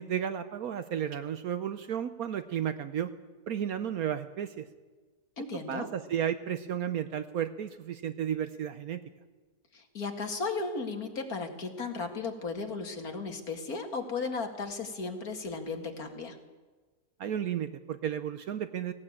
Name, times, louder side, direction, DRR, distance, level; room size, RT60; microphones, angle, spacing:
voice 1, 0.0-3.1 3.5-4.7 5.7-9.0 17.2-18.9, right 9 dB, 65° right, 11 dB, 1.2 m, -33 dB
voice 2, 5.4-5.9 9.7-16.4, left 4 dB, 65° left, 5 dB, 2.4 m, -35 dB
17.5 x 17.5 x 8.7 m, 1.3 s
omnidirectional pair, 1.7 m